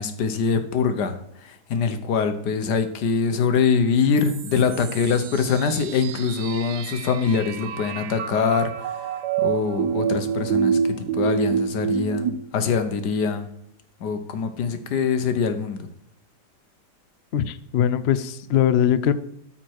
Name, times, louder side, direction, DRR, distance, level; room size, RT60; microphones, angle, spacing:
voice 1, 0.0-9.0 9.4-13.5 14.0-15.9, left 5 dB, 85° left, 8 dB, 1.5 m, -24 dB
sound 1, 4.2-12.3, right 7 dB, 90° right, 1.3 m, -27 dB
voice 2, 17.3-19.1, left 10 dB, 65° left, 12 dB, 0.6 m, -21 dB
13.0 x 4.4 x 4.6 m, 0.72 s
omnidirectional pair, 1.7 m